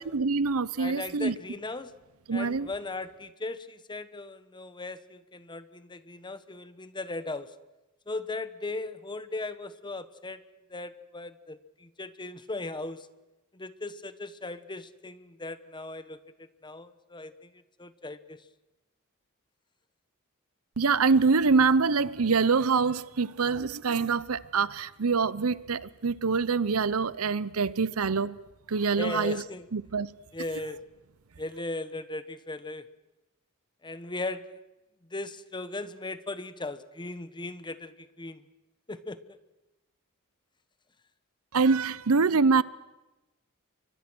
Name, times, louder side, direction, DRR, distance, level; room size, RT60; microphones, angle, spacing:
voice 1, 0.0-1.3 2.3-2.7 20.8-28.4 28.7-29.4 29.7-30.1 41.5-42.6, right 4 dB, 85° right, 0.8 m, -25 dB
voice 2, 0.8-1.9 2.3-7.5 8.1-10.4 10.7-13.1 13.5-16.2 16.6-18.4 28.9-29.7 30.3-30.8 31.4-32.9 33.8-34.6 35.1-38.4 38.9-39.4, left 2 dB, 20° left, 1.2 m, -38 dB
30.0 x 24.0 x 6.2 m
head